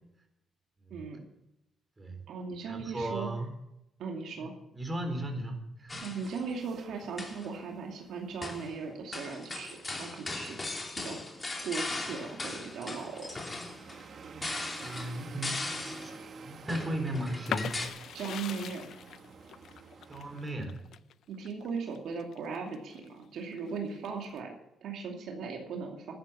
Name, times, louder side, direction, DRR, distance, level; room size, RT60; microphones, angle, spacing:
voice 1, 0.9-1.2 2.3-3.3 4.0-4.6 6.0-10.6 11.0-11.2 11.6-13.3 18.1-18.9 21.3-26.2, right 5 dB, 75° right, 1 dB, 2.5 m, -38 dB
voice 2, 2.7-3.5 4.4-6.1 14.8-16.1 16.4-17.8 20.1-20.9, right 1 dB, 25° right, 4 dB, 4.2 m, -36 dB
sound 1, 5.9-6.4 7.0-7.5 8.4-8.7 9.1-16.2 16.7-17.9, left 2 dB, 25° left, 2.9 m, -38 dB
sound 2, 6.2-20.5, right 5 dB, 50° right, 1.8 m, -51 dB
sound 3, 17.4-23.1 23.5-24.4, left 9 dB, 70° left, 0.5 m, -40 dB
13.0 x 9.7 x 8.6 m, 0.85 s
cardioid pair, 90°, 0 cm